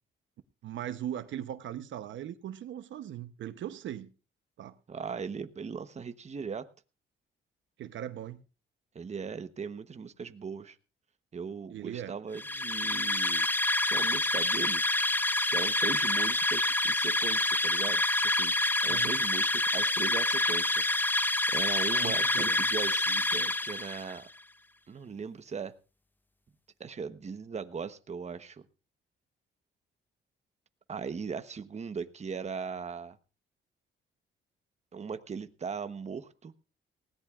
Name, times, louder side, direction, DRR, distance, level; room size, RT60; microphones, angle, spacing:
voice 1, 0.6-4.1 4.6-4.7 7.8-8.4 11.7-12.1 18.9-19.1 22.0-22.6, right 11 dB, 70° right, 0.9 m, -39 dB
voice 2, 4.9-6.7 8.9-10.8 11.3-13.5 13.8-14.8 15.5-18.5 18.8-20.8 21.5-24.3 24.9-25.7 26.8-28.6 30.9-33.2 34.9-36.5, right 6 dB, 35° right, 1.1 m, -39 dB
sound 1, 12.3-24.2, left 2 dB, 10° left, 0.5 m, -27 dB
19.0 x 17.0 x 2.5 m
cardioid pair, 90°, 20 cm